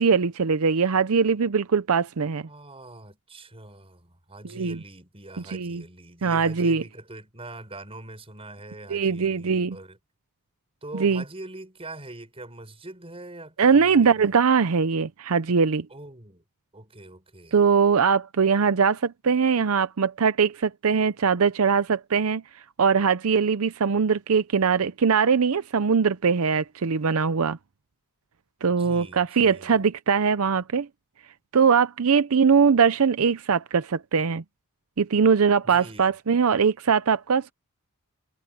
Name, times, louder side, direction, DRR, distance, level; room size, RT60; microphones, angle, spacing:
voice 1, 0.0-2.5 4.5-4.8 5.5-5.8 6.2-6.8 8.9-9.8 10.9-11.2 13.6-15.9 17.5-22.4 22.8-27.6 28.6-30.9 31.5-34.4 35.0-37.5, right 6 dB, 75° right, 0.6 m, -21 dB
voice 2, 2.5-10.0 10.8-14.3 15.9-16.4 16.7-17.6 28.8-29.9 35.6-36.2, right 2 dB, 25° right, 5.6 m, -43 dB
head